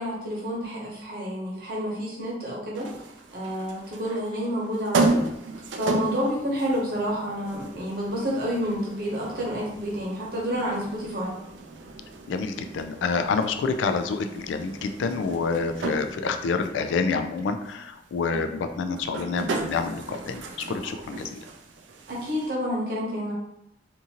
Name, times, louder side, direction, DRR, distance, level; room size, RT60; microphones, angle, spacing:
voice 1, 0.0-2.9 3.3-5.2 5.7-11.3 22.1-23.3, equal, 55° right, -4 dB, 0.9 m, -29 dB
sound 1, 2.7-22.5, right 3 dB, 85° right, 0.4 m, -34 dB
voice 2, 12.3-21.4, left 4 dB, 85° left, 7 dB, 0.3 m, -28 dB
2.6 x 2.5 x 2.8 m, 0.80 s
head